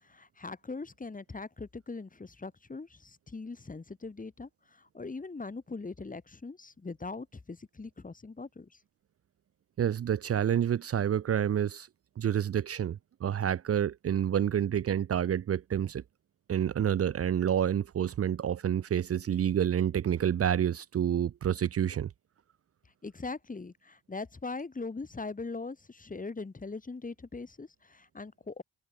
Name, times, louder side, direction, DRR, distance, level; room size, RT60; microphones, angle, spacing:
voice 1, 0.0-8.7 23.0-28.6, left 3 dB, 25° left, 1.9 m, -41 dB
voice 2, 9.8-11.9 12.2-16.0 16.5-22.1, right 9 dB, 50° right, 0.7 m, -28 dB
supercardioid pair, 55°, 31 cm